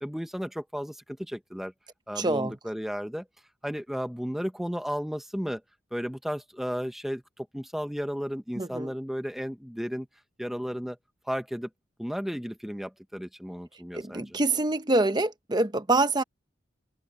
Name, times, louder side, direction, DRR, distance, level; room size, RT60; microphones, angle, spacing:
voice 1, 0.0-1.7 2.1-3.3 3.6-5.6 5.9-10.1 10.4-11.0 11.3-11.7 12.0-14.4, equal, ahead, 1.2 m, -34 dB
voice 2, 2.2-2.5 8.6-8.9 13.9-16.2, right 2 dB, 20° right, 0.9 m, -25 dB
head